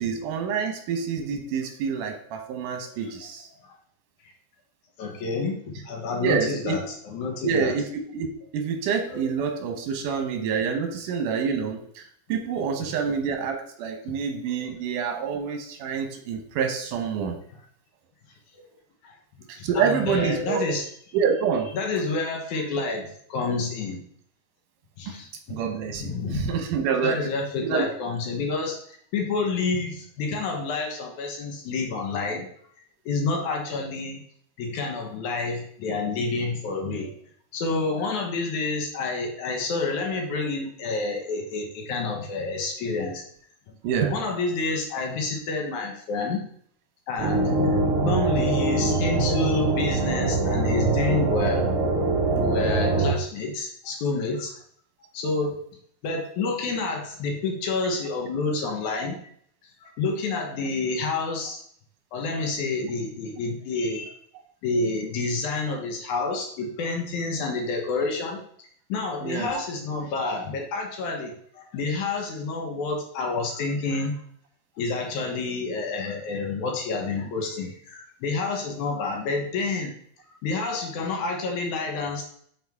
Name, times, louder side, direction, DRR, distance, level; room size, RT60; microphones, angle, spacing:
voice 1, 0.0-3.5 6.2-6.8 7.4-7.8 8.1-8.3 8.5-17.4 19.5-20.7 21.1-21.7 25.1-25.2 25.5-27.2 27.6-27.9 43.8-44.2 69.2-69.5, right 6 dB, 85° right, 4 dB, 2.5 m, -27 dB
voice 2, 5.0-7.8 9.1-9.2 12.8-12.9 14.6-14.7 19.0-20.8 21.7-24.0 25.0-25.6 26.0-26.6 27.0-28.8 29.1-32.5 33.1-34.2 34.6-37.1 37.5-43.2 44.1-46.4 47.1-51.7 52.3-54.6 55.1-55.6 56.0-59.2 59.6-61.6 62.1-64.1 64.6-74.1 74.8-79.9 80.4-82.3, left 3 dB, 70° left, 1 dB, 2.4 m, -29 dB
sound 1, 47.2-53.1, right 3 dB, 65° right, 1.3 m, -23 dB
7.7 x 4.3 x 3.5 m, 0.62 s
omnidirectional pair, 3.6 m